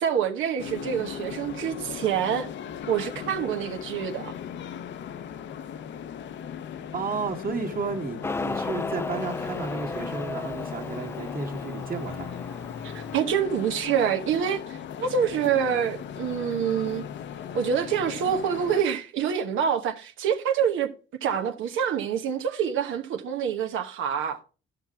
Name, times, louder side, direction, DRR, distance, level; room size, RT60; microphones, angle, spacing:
voice 1, 0.0-2.5 2.9-4.3 12.8-17.1 17.5-20.9 21.2-24.4, right 8 dB, 85° right, 1.1 m, -26 dB
sound 1, 0.6-18.8, left 8 dB, 65° left, 0.7 m, -38 dB
voice 2, 6.9-12.4, right 4 dB, 45° right, 1.8 m, -33 dB
Motorcycle, 8.2-13.2, left 3 dB, 15° left, 0.3 m, -34 dB
12.5 x 5.9 x 3.5 m
cardioid pair, 90°, 20 cm